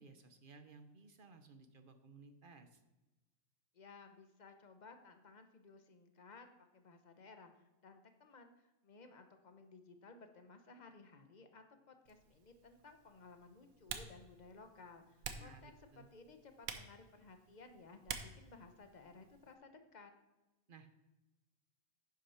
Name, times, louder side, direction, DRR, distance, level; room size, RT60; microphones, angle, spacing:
voice 1, 0.0-2.8 15.3-16.1 20.7-21.0, right 4 dB, 45° right, 8 dB, 0.8 m, -59 dB
voice 2, 3.7-6.5 6.7-20.1, left 4 dB, 35° left, 7 dB, 0.9 m, -58 dB
Typing, 12.1-19.6, right 6 dB, 75° right, 1.3 m, -51 dB
9.8 x 6.5 x 5.7 m, 1.1 s
omnidirectional pair, 1.5 m